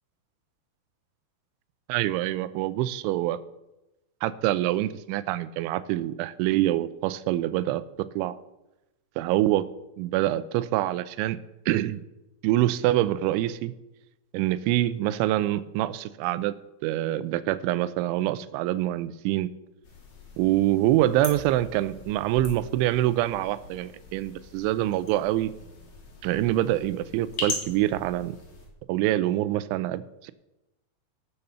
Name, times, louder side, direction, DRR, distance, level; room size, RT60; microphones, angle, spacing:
voice 1, 1.9-3.4 4.2-7.8 8.2-8.3 9.2-9.6 10.0-11.4 11.7-12.0 12.4-13.7 14.3-16.5 16.8-19.5 20.4-25.5 26.2-28.4 28.9-30.3, right 14 dB, 90° right, 15 dB, 3.1 m, -25 dB
sound 1, 19.8-28.7, left 4 dB, 60° left, 4.9 m, -40 dB
18.0 x 7.0 x 6.8 m, 0.95 s
omnidirectional pair, 5.3 m